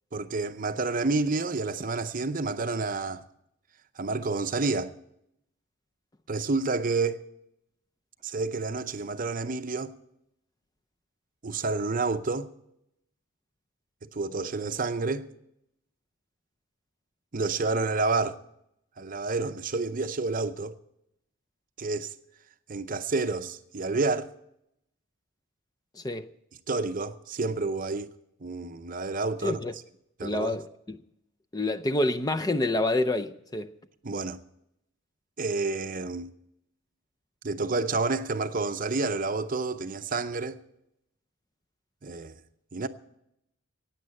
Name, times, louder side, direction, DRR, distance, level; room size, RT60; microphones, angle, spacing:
voice 1, 0.1-3.2 4.0-4.9 6.3-7.2 8.2-9.9 11.4-12.5 14.0-15.3 17.3-18.4 19.0-20.8 21.8-22.1 22.7-24.3 26.7-28.1 28.4-29.6 30.2-30.6 34.0-34.4 35.4-36.3 37.4-40.6 42.0-42.3 42.7-42.9, right 3 dB, 40° right, 0.6 m, -29 dB
voice 2, 25.9-26.3 29.4-29.7 30.2-31.0 31.5-33.7, left 2 dB, 15° left, 0.5 m, -28 dB
16.0 x 9.2 x 7.6 m
head